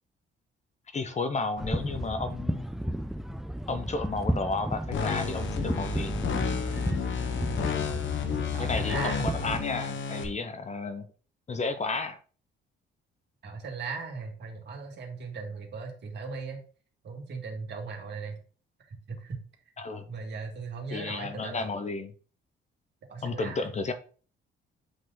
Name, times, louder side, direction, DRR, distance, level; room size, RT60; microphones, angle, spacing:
voice 1, 0.9-2.7 3.7-6.1 8.6-11.1 11.5-12.2 19.8-20.1 20.9-22.1 23.2-23.9, left 3 dB, 35° left, 9 dB, 1.0 m, -32 dB
sound 1, 1.6-9.6, equal, ahead, 0.5 m, -33 dB
sound 2, 4.9-10.2, left 6 dB, 70° left, 1.3 m, -31 dB
voice 2, 8.5-9.4 13.4-16.6 17.0-18.4 18.9-19.4 20.1-21.6 23.1-23.7, right 4 dB, 60° right, 1 dB, 2.3 m, -38 dB
7.9 x 3.9 x 4.0 m, 0.39 s
cardioid pair, 90°, 20 cm